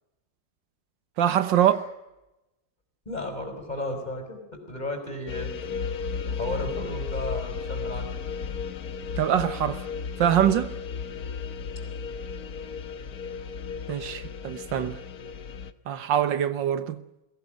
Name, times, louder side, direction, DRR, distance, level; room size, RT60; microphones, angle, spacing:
voice 1, 1.2-1.8 9.2-9.9 10.2-10.7 13.9-15.0 15.9-17.0, right 10 dB, 85° right, 1.9 m, -24 dB
voice 2, 3.1-5.8 6.2-8.2, left 1 dB, 20° left, 5.5 m, -34 dB
sound 1, 5.3-15.7, left 5 dB, 60° left, 1.5 m, -34 dB
22.5 x 16.5 x 9.0 m
omnidirectional pair, 1.9 m